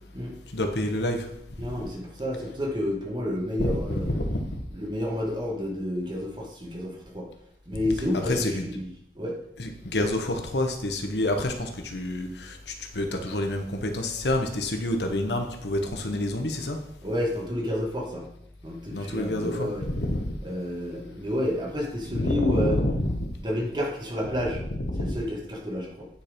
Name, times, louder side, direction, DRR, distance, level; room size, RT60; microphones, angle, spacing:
voice 1, 0.5-1.3 3.6-4.6 8.1-8.7 9.6-16.8 18.9-20.3 22.1-23.3 24.5-25.2, left 1 dB, 80° left, 5 dB, 1.1 m, -28 dB
voice 2, 1.6-4.1 4.7-7.3 7.7-8.9 9.1-9.4 17.0-18.2 18.6-19.8 20.4-22.8 23.4-24.6 25.0-26.1, left 1 dB, 25° right, -1 dB, 1.6 m, -30 dB
9.7 x 4.4 x 5.1 m, 0.75 s
head